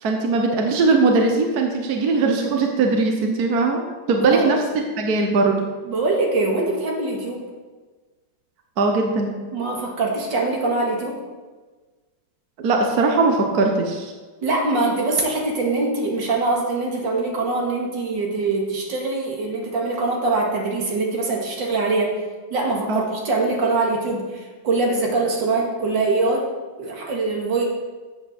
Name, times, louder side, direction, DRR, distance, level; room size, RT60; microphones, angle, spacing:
voice 1, 0.0-3.8 4.1-5.6 8.8-9.3 12.6-14.1 22.9-23.0, right 3 dB, 60° right, 2 dB, 1.6 m, -20 dB
voice 2, 5.8-7.4 9.5-11.2 14.4-22.2 22.5-26.5 26.8-27.7, right 3 dB, 80° right, -1 dB, 2.6 m, -23 dB
14.0 x 8.1 x 4.3 m, 1.3 s
omnidirectional pair, 2.0 m